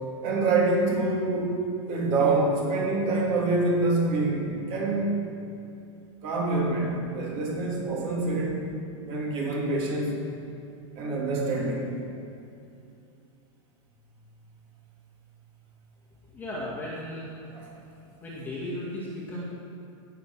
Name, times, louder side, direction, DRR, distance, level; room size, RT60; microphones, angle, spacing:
voice 1, 0.2-1.6 1.9-5.1 6.2-8.6 9.0-10.2 11.0-12.0 17.5-17.7, right 2 dB, 35° right, -3 dB, 2.6 m, -26 dB
voice 2, 16.3-17.3 18.2-19.4, left 1 dB, 10° left, -6 dB, 1.9 m, -35 dB
17.0 x 5.9 x 6.0 m, 2.7 s
supercardioid pair, 170°, 17 cm